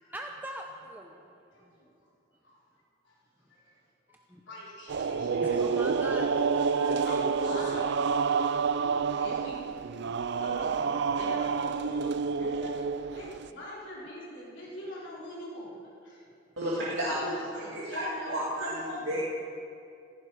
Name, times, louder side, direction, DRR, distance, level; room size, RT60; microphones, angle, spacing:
voice 1, 0.1-1.3 1.6-1.7 4.3-4.4 5.4-7.0, right 1 dB, 10° right, 1 dB, 0.7 m, -42 dB
voice 2, 1.5-1.9 2.4-2.6 3.0-3.1 4.5-5.9 6.9-8.0 9.1-9.7 10.4-12.8 13.1-16.2 17.0-19.0, equal, 70° left, -6 dB, 4.2 m, -42 dB
sound 1, 4.9-13.5, right 5 dB, 60° right, 0.4 m, -28 dB
voice 3, 16.6-19.2, equal, 75° right, -7 dB, 2.3 m, -32 dB
16.0 x 14.5 x 4.8 m, 2.6 s
head